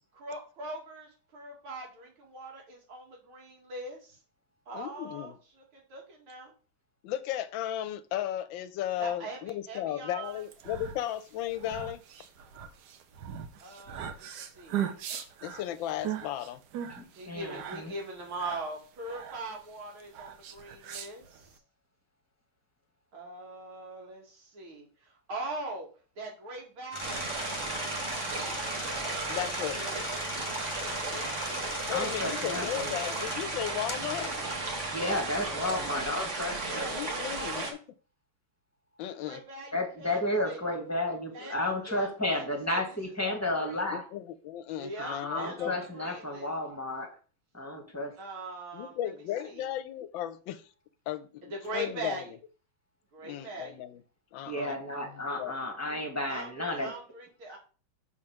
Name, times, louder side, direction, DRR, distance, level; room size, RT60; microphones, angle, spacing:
voice 1, 0.1-4.1 4.7-5.3 5.7-6.5 9.0-10.4 13.6-14.3 14.5-15.1 17.2-21.5 23.1-25.9 26.2-30.0 30.4-31.3 35.6-35.8 36.7-37.8 39.2-40.2 40.4-40.6 41.3-43.0 43.2-43.8 44.8-46.5 48.2-49.0 49.4-49.6 51.5-52.3 53.1-53.8 56.3-57.6, right 2 dB, 85° right, -1 dB, 2.8 m, -42 dB
voice 2, 4.7-5.3 7.0-12.0 15.4-16.6 29.3-29.8 31.9-34.3 36.9-37.8 39.0-39.4 43.9-45.7 48.7-50.7 51.1-52.2 53.2-54.0 54.3-54.8 55.1-55.6, left 12 dB, 75° left, 13 dB, 1.3 m, -35 dB
sound 1, 10.4-21.6, right 9 dB, 65° right, 1.2 m, -39 dB
voice 3, 16.9-17.9 31.9-32.9 34.9-36.9 39.7-44.0 45.0-47.1 47.5-48.1 54.4-56.9 57.5-57.6, left 1 dB, 10° left, 2 dB, 1.3 m, -32 dB
sound 2, 26.9-35.9, left 2 dB, 45° left, 0.3 m, -40 dB
sound 3, 27.0-37.7, right 3 dB, 40° right, 1.4 m, -35 dB
6.5 x 3.7 x 5.8 m, 0.37 s
omnidirectional pair, 2.2 m